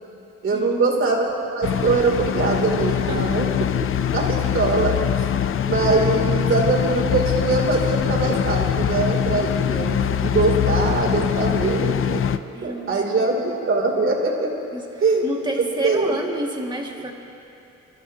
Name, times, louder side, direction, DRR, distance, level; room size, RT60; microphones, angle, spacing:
voice 1, 0.4-3.5 3.9-5.0 5.6-14.5 15.0-15.2 15.8-16.1, right 3 dB, 45° right, -1 dB, 2.9 m, -22 dB
sound 1, 1.6-12.4, left 9 dB, 45° left, 0.5 m, -23 dB
voice 2, 2.9-3.4 5.5-5.6 5.9-6.4 12.5-13.3 14.7-14.9 15.2-17.1, right 1 dB, 15° right, 0 dB, 1.9 m, -30 dB
27.5 x 13.0 x 2.8 m, 2.8 s
cardioid pair, 90°, 30 cm